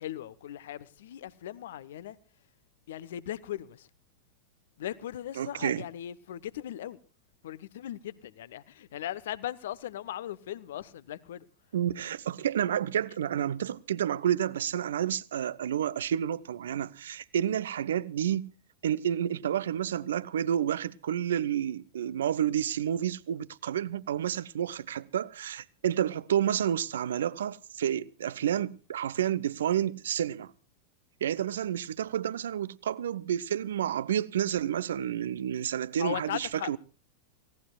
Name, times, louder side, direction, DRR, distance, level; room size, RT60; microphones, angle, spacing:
voice 1, 0.0-2.2 2.9-3.9 4.8-7.0 7.4-11.5 36.0-36.8, left 12 dB, 60° left, 1.0 m, -38 dB
voice 2, 5.4-5.8 11.7-18.5 18.8-30.5 31.2-36.8, right 10 dB, 65° right, 0.7 m, -30 dB
29.5 x 17.5 x 2.4 m
figure-of-eight pair, 90°, 0 cm